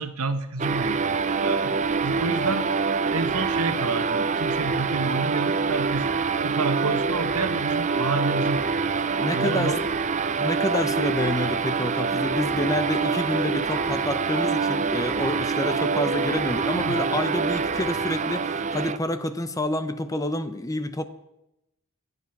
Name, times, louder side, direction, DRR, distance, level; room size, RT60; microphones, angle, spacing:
voice 1, 0.0-1.8 2.0-2.7 3.1-6.1 6.4-9.9 16.8-17.0, right 3 dB, 80° right, 1.3 m, -29 dB
sound 1, 0.6-19.0, right 4 dB, 30° right, 0.6 m, -25 dB
voice 2, 9.2-9.8 10.4-21.0, left 1 dB, 15° left, 0.8 m, -28 dB
25.0 x 9.6 x 6.0 m
head